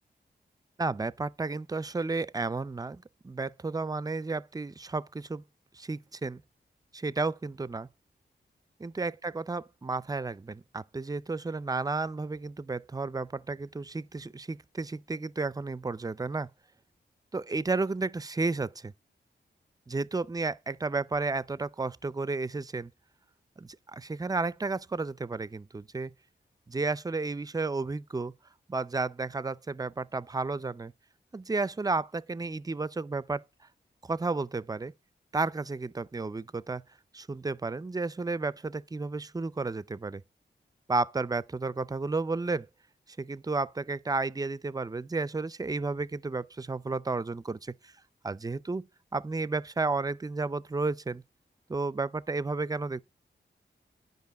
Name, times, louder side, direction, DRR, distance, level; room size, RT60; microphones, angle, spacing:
voice 1, 0.8-5.4 5.7-6.4 6.9-7.9 8.8-16.5 17.3-18.9 19.9-22.9 23.6-26.1 26.7-28.3 28.7-30.9 31.3-33.4 34.0-34.9 35.3-36.8 37.1-40.2 40.9-42.7 43.1-47.9 48.2-51.2 51.7-53.0, right 3 dB, 20° right, 0.4 m, -32 dB
10.5 x 5.3 x 6.7 m
cardioid pair, 60°, 19 cm